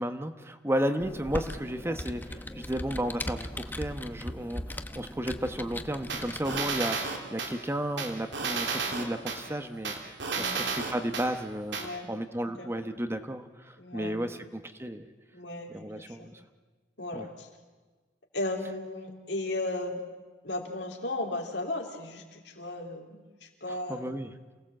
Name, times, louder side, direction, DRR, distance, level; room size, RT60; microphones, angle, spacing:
voice 1, 0.0-4.6 4.9-9.9 10.4-11.8 12.1-15.1 15.7-16.4 17.1-17.3 23.7-24.3, right 1 dB, 15° right, 8 dB, 1.0 m, -33 dB
Computer keyboard, 1.0-6.8, left 1 dB, 10° left, 0.9 m, -38 dB
sound 1, 6.1-7.5 8.0-9.4 9.8-11.3 11.7-11.8, right 4 dB, 85° right, 3.0 m, -32 dB
voice 2, 10.3-10.6 11.8-12.1 12.4-12.7 13.8-14.2 15.3-16.3 17.0-17.5 18.3-20.0 20.4-24.2, left 2 dB, 75° left, 2 dB, 3.4 m, -36 dB
27.5 x 17.5 x 7.7 m, 1.3 s
head